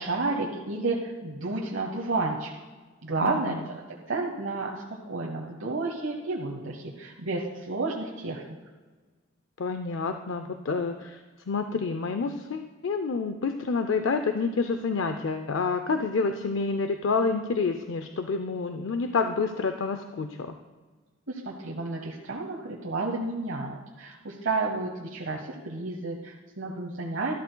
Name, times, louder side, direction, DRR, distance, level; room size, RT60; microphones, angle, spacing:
voice 1, 0.0-2.5 3.0-8.6 21.3-27.3, right 3 dB, 70° right, -2 dB, 1.0 m, -31 dB
voice 2, 3.2-3.6 9.6-20.6, left 4 dB, 65° left, 7 dB, 0.5 m, -28 dB
13.0 x 11.5 x 2.2 m, 1.4 s
head